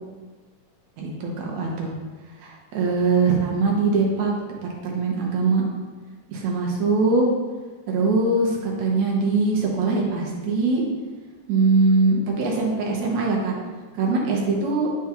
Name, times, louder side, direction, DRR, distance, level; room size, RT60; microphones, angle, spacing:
voice 1, 1.0-1.9 2.4-4.3 4.6-5.6 6.3-7.3 7.9-10.8 11.5-13.5 14.0-14.9, right 3 dB, 75° right, -2 dB, 2.3 m, -22 dB
9.9 x 3.6 x 2.9 m, 1.3 s
omnidirectional pair, 3.4 m